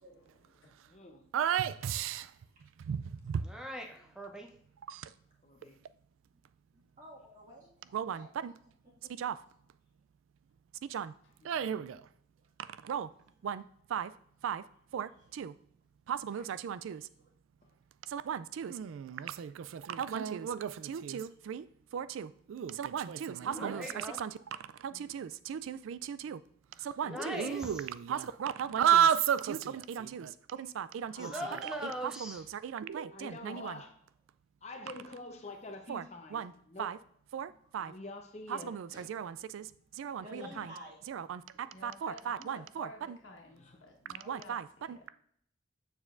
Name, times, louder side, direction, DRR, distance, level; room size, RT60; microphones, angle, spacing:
voice 1, 0.1-1.0 24.9-25.2 41.7-45.0, left 2 dB, 75° left, 1.5 m, -53 dB
voice 2, 0.8-1.2 5.4-5.8 11.4-11.9 23.4-23.9 27.0-27.6 31.1-32.0 33.1-33.9 34.6-36.9 37.8-38.7 40.3-40.6 43.6-43.8, left 2 dB, 35° left, 0.8 m, -46 dB
voice 3, 1.3-2.3 2.6-3.5 4.9-5.1 7.9-8.5 9.2-9.4 10.9-11.1 11.4-12.1 12.6-13.1 13.4-13.6 13.9-14.1 14.4-14.6 14.9-15.5 16.1-17.1 18.1-21.7 21.9-24.3 24.6-26.4 26.7-33.8 35.9-36.0 36.3-36.5 36.8-37.0 37.3-37.9 38.5-40.7 41.1-43.2 44.3-45.0, right 8 dB, 85° right, 0.3 m, -35 dB
voice 4, 3.4-4.5 23.5-24.2 27.0-27.8 31.2-32.4, equal, 5° right, 0.7 m, -41 dB
voice 5, 6.7-8.3 8.8-9.1 12.4-12.5 16.3-16.4 17.2-17.3 17.6-17.7 38.9-39.0 40.2-41.2, equal, 40° right, 1.8 m, -52 dB
7.1 x 6.5 x 2.5 m
head